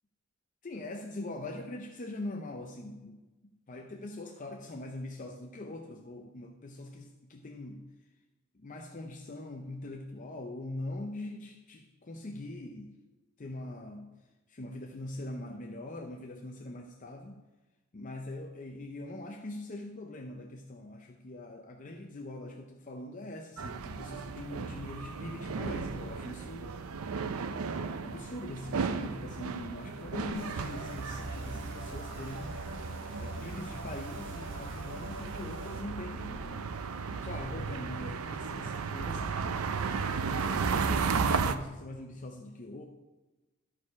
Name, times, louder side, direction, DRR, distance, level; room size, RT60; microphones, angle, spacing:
voice 1, 0.6-3.2 3.7-7.9 8.5-12.9 13.4-14.1 14.5-17.4 17.9-26.9 28.0-32.6 33.2-36.8 37.1-39.6 40.2-42.9, left 2 dB, 35° left, 2 dB, 0.6 m, -42 dB
sound 1, 23.6-41.5, right 5 dB, 85° right, 0.5 m, -35 dB
sound 2, 30.3-35.8, right 1 dB, 60° right, 1.4 m, -45 dB
12.5 x 4.7 x 4.8 m, 1.1 s
head